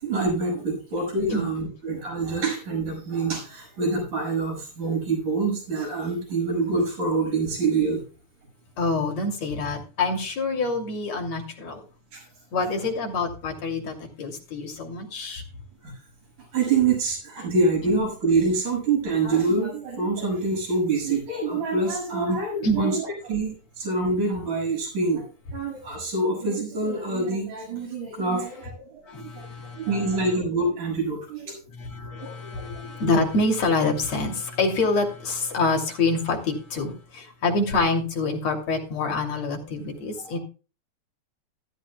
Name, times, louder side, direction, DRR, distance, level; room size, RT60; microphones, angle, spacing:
voice 1, 0.0-8.0 12.1-12.2 15.8-15.9 16.5-25.3 25.5-29.5 29.7-31.6 32.2-32.6, right 3 dB, 85° right, 0 dB, 8.0 m, -26 dB
voice 2, 8.8-11.8 12.5-15.4 22.6-22.8 29.1-29.8 31.8-40.4, left 3 dB, 60° left, 2 dB, 4.0 m, -26 dB
15.0 x 13.0 x 2.3 m, 0.34 s
omnidirectional pair, 3.5 m